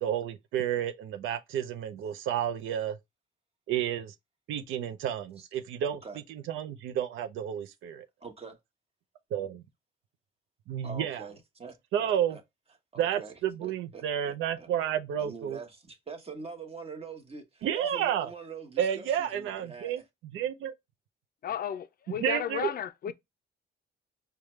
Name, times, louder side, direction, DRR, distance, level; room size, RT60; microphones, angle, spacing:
voice 1, 0.0-3.0 3.7-4.1 4.5-6.0 6.5-8.0 9.3-9.6 10.7-11.2 11.9-12.4 13.0-15.6 17.6-18.3 18.8-20.0 20.3-20.7 22.2-22.7, right 10 dB, 85° right, 0.5 m, -31 dB
voice 2, 8.2-8.6 10.7-12.4 12.9-14.7 15.1-20.0, right 4 dB, 30° right, 1.1 m, -45 dB
voice 3, 21.4-23.1, left 10 dB, 50° left, 0.4 m, -33 dB
4.9 x 2.3 x 3.1 m
cardioid pair, 90°, 20 cm